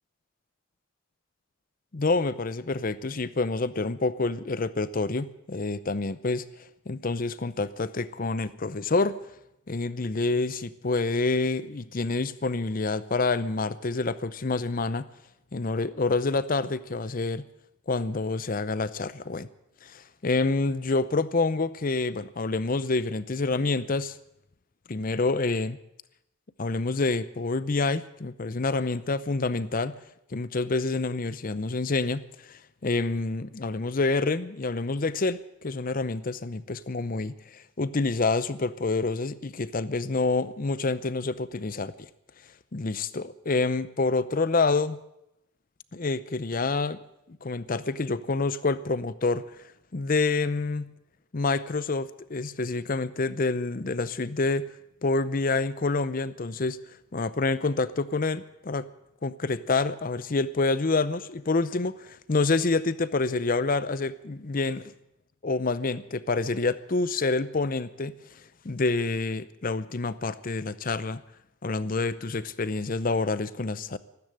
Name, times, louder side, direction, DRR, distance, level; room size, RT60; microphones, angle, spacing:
voice 1, 1.9-9.2 9.7-15.1 15.5-17.5 17.9-19.5 19.8-24.2 24.9-25.8 26.6-30.0 30.3-42.1 42.7-45.0 45.9-47.0 47.3-49.5 49.9-50.9 51.3-54.7 55.0-56.8 57.1-58.9 59.2-64.9 65.4-71.2 71.6-74.0, left 3 dB, 45° left, 16 dB, 0.6 m, -27 dB
14.0 x 13.0 x 7.9 m, 0.82 s
head